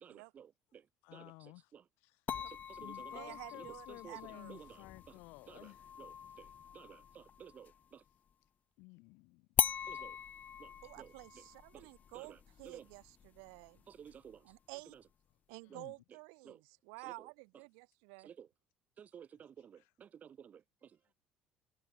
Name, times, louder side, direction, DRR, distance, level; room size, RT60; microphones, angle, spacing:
voice 1, 0.0-0.8 1.1-1.8 2.5-5.1 5.5-5.7 6.0-8.0 9.8-10.2 10.6-11.4 11.7-12.9 13.9-14.5 14.9-15.0 15.7-15.8 16.4-16.6 17.0-17.3 18.2-18.5 19.0-21.1, right 8 dB, 45° right, 1.6 m, -55 dB
voice 2, 1.0-1.7 2.0-2.2 2.8-5.9 8.8-9.5 15.6-15.9 19.8-19.9, left 27 dB, 75° left, 2.3 m, -54 dB
sound 1, 2.3-7.9 9.6-14.6, left 8 dB, 45° left, 3.1 m, -41 dB
voice 3, 3.1-4.6 10.8-13.8 14.4-15.0 15.5-18.3, right 40 dB or more, 80° right, 7.9 m, -51 dB
hypercardioid pair, 65°, 4 cm